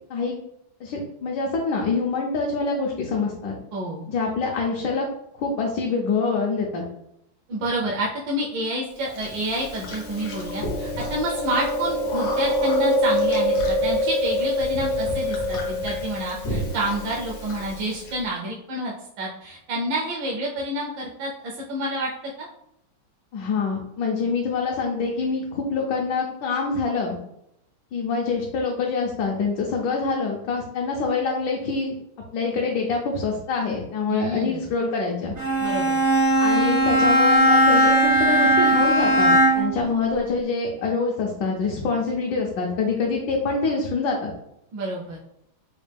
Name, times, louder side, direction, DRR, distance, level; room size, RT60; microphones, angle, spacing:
voice 1, 0.8-3.6 4.1-5.0 5.3-6.8 23.3-27.2 27.9-31.9 32.3-35.3 36.4-44.3, left 4 dB, 75° left, -1 dB, 1.2 m, -25 dB
voice 2, 3.7-4.1 7.5-22.1 22.4-22.5 34.1-34.6 35.6-36.0 44.7-45.2, right 1 dB, 75° right, -3 dB, 1.3 m, -29 dB
Chewing mastication, 9.2-18.1, left 1 dB, 60° left, 0.7 m, -25 dB
Bowed string instrument, 35.4-39.8, right 1 dB, 45° right, 0.6 m, -18 dB
4.1 x 2.2 x 3.3 m, 0.79 s
omnidirectional pair, 2.1 m